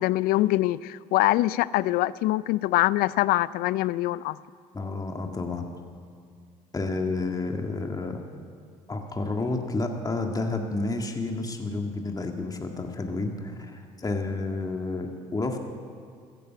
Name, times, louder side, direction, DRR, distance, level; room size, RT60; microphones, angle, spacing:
voice 1, 0.0-4.4, left 17 dB, 60° left, 20 dB, 0.4 m, -24 dB
voice 2, 4.7-5.7 6.7-8.2 8.9-15.6, left 3 dB, 20° left, 3 dB, 1.9 m, -30 dB
14.5 x 11.0 x 8.0 m, 2.2 s
hypercardioid pair, 60°, 17 cm